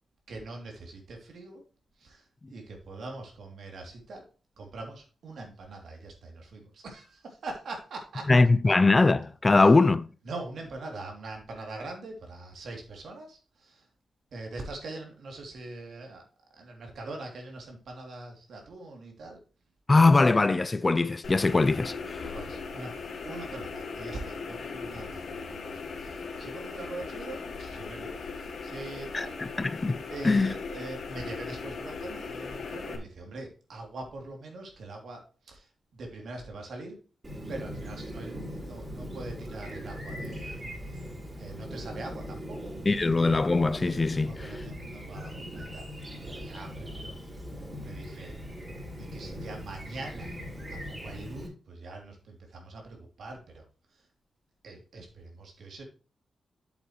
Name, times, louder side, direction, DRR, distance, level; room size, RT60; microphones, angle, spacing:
voice 1, 0.3-1.6 2.0-4.2 4.6-8.3 8.6-8.7 9.6-9.7 10.2-13.9 14.3-16.2 16.5-19.4 22.3-29.4 30.1-37.0 37.5-41.1 41.4-42.7 44.3-47.1 47.8-48.3 49.0-50.4 50.7-53.7 53.9-54.0 54.6-55.8, right 2 dB, 75° right, 3.0 m, -43 dB
voice 2, 8.3-10.1 19.9-22.2 29.1-30.5 42.9-44.5, left 3 dB, 25° left, 0.5 m, -22 dB
sound 1, 21.2-33.0, left 4 dB, 65° left, 2.0 m, -38 dB
Chirp tweet, 37.2-51.5, equal, 25° right, 4.6 m, -40 dB
8.1 x 8.0 x 3.2 m
wide cardioid pair, 105°, 0 cm